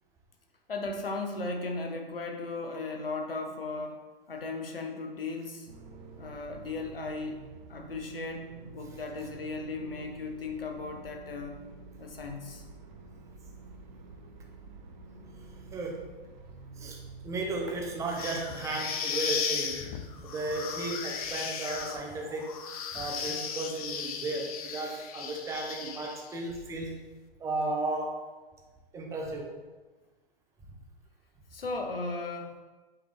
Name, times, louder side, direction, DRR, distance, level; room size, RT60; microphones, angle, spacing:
voice 1, 0.7-4.0 4.3-5.7 6.2-11.6 12.0-12.6 31.5-32.6, left 3 dB, 70° left, 3 dB, 1.0 m, -36 dB
sound 1, 5.7-19.1, right 4 dB, 50° right, 0.7 m, -48 dB
voice 2, 15.7-16.1 16.8-17.0 17.2-22.5 22.9-27.0 27.4-28.2 28.9-29.6, right 2 dB, 10° right, 0 dB, 0.7 m, -34 dB
sound 2, 18.1-26.4, left 6 dB, 40° left, 0.5 m, -36 dB
7.9 x 3.6 x 3.3 m, 1.3 s
figure-of-eight pair, 110°, 29 cm